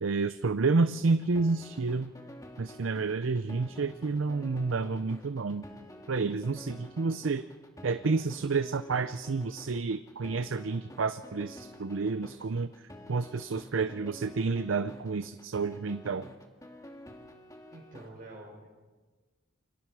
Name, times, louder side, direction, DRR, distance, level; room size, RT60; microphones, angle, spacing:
voice 1, 0.0-2.1 2.6-5.7 6.1-7.4 7.8-16.3, right 4 dB, 90° right, 12 dB, 0.6 m, -30 dB
sound 1, 1.0-18.1, left 1 dB, 15° left, 2.3 m, -49 dB
voice 2, 17.7-18.7, right 2 dB, 45° right, -4 dB, 4.8 m, -47 dB
29.0 x 24.5 x 4.8 m, 1.3 s
head